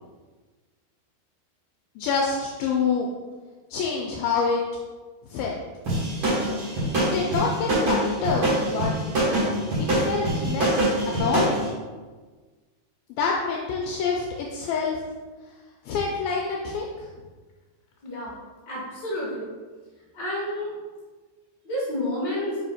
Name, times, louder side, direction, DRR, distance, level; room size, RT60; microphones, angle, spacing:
voice 1, 2.0-3.1 3.7-4.6 5.3-5.6 7.0-8.9 9.8-11.8 13.1-15.0 15.9-17.1, left 5 dB, 80° left, -1 dB, 2.2 m, -27 dB
sound 1, 5.9-11.6, right 1 dB, 40° right, 2.0 m, -24 dB
voice 2, 18.7-19.5 20.1-20.7 21.6-22.6, left 1 dB, 45° left, -8 dB, 1.6 m, -29 dB
5.4 x 5.1 x 4.2 m, 1.4 s
omnidirectional pair, 4.6 m